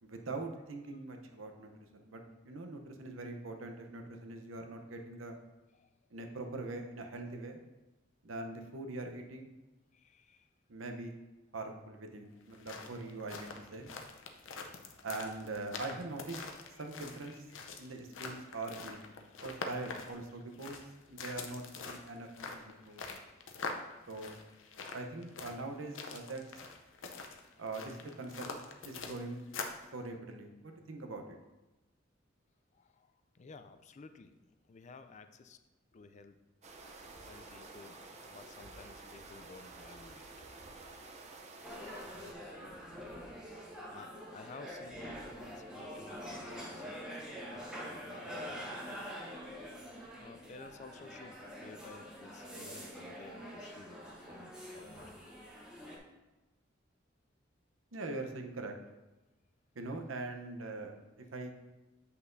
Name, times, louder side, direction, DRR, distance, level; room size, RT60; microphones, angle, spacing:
voice 1, 0.0-5.4 6.1-7.6 8.2-9.5 10.7-11.1 11.5-13.9 15.0-16.4 16.8-17.5 17.8-19.0 19.4-20.8 21.1-23.0 24.1-24.3 24.9-26.4 27.6-28.6 28.8-29.4 29.9-31.2 57.9-58.7 59.7-61.0 61.3-61.5, right 2 dB, 85° right, 4 dB, 0.8 m, -42 dB
voice 2, 9.9-10.5 32.7-34.4 34.7-35.6 35.9-36.4 36.9-40.3 40.9-41.1 43.4-49.0 50.2-55.4, left 4 dB, 35° left, 9 dB, 0.4 m, -54 dB
sound 1, 12.4-29.9, left 4 dB, 75° left, 0.7 m, -45 dB
sound 2, 36.6-42.3, right 3 dB, 35° right, 0.6 m, -51 dB
sound 3, 41.6-56.0, equal, 5° right, 1.2 m, -45 dB
8.0 x 5.6 x 2.6 m, 1.1 s
head